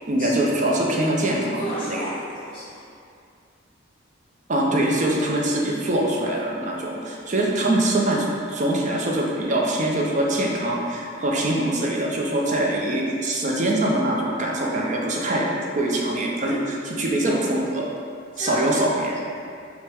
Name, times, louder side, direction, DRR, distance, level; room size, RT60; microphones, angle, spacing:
voice 1, 0.1-2.1 4.5-15.5 15.7-17.9 18.4-19.2, right 1 dB, 40° right, -2 dB, 0.5 m, -23 dB
voice 2, 1.6-2.8 18.3-18.7, equal, 25° left, -14 dB, 1.0 m, -33 dB
5.5 x 2.1 x 3.4 m, 2.4 s
head